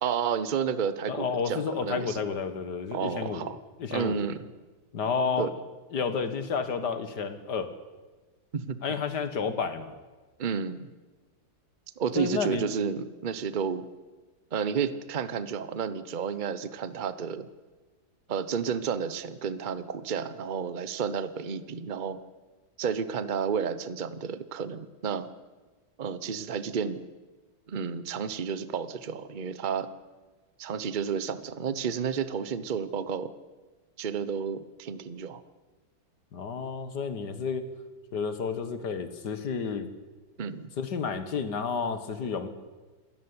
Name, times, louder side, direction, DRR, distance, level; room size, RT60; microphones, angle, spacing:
voice 1, 0.0-2.2 2.9-3.6 3.9-4.5 5.4-5.5 8.5-8.8 10.4-10.9 12.0-13.9 14.5-17.5 18.3-22.2 22.8-25.3 26.0-27.0 27.7-29.9 30.6-33.3 34.0-35.4 40.4-40.7, right 7 dB, 35° right, 14 dB, 0.8 m, -31 dB
voice 2, 1.1-3.4 3.8-4.2 4.9-5.5 5.9-7.7 8.8-9.9 12.1-12.6 36.3-37.7 38.1-39.9 40.8-42.5, left 5 dB, 60° left, 11 dB, 2.2 m, -31 dB
26.5 x 14.0 x 9.8 m, 1.2 s
omnidirectional pair, 2.1 m